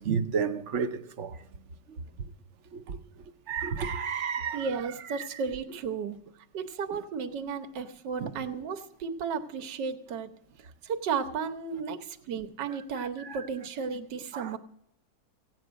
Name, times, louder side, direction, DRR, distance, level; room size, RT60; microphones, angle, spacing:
voice 1, 0.0-1.4 2.7-3.0 3.5-4.7 5.2-5.3 8.2-8.3 13.3-13.4 14.3-14.5, right 6 dB, 60° right, 0.8 m, -31 dB
voice 2, 4.5-6.2 6.5-10.3 10.6-14.6, right 5 dB, 80° right, 1.6 m, -34 dB
16.5 x 9.1 x 6.3 m
omnidirectional pair, 1.9 m